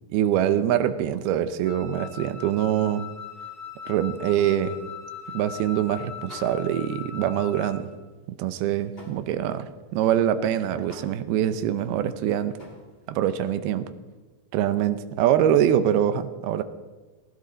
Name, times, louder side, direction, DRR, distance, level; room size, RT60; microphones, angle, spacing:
voice 1, 0.1-3.1 3.9-4.8 5.3-7.9 8.3-12.6 13.1-13.9 14.5-16.6, right 10 dB, 85° right, 12 dB, 2.7 m, -24 dB
Wind instrument woodwind instrument, 1.6-7.9, left 8 dB, 60° left, 3.5 m, -40 dB
sound 1, 3.8-5.7 6.1-6.9 7.2-7.4 7.8-13.6, left 1 dB, 15° left, 2.6 m, -50 dB
19.5 x 16.0 x 4.0 m, 1.2 s
omnidirectional pair, 4.4 m